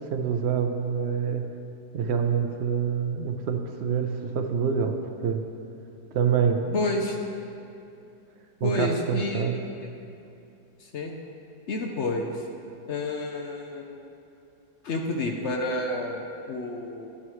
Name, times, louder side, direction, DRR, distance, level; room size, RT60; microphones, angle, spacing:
voice 1, 0.0-1.4 1.9-5.0 5.2-5.4 6.1-6.8 8.6-9.6, right 7 dB, 75° right, 5 dB, 0.6 m, -26 dB
voice 2, 6.7-7.2 8.6-9.6 10.9-11.1 11.7-12.4 12.9-14.0 14.8-17.2, left 2 dB, 60° left, 2 dB, 0.8 m, -29 dB
11.0 x 9.8 x 3.1 m, 2.7 s
omnidirectional pair, 1.8 m